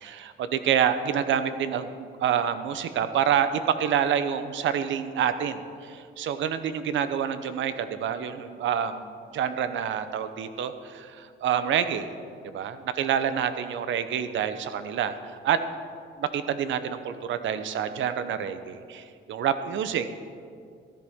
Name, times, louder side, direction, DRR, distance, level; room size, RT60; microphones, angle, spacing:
voice 1, 0.0-9.0 9.3-12.1 12.5-15.2 15.4-15.6 16.2-20.1, right 8 dB, 75° right, 11 dB, 0.8 m, -27 dB
15.0 x 10.5 x 3.6 m, 2.2 s
cardioid pair, 90°, 20 cm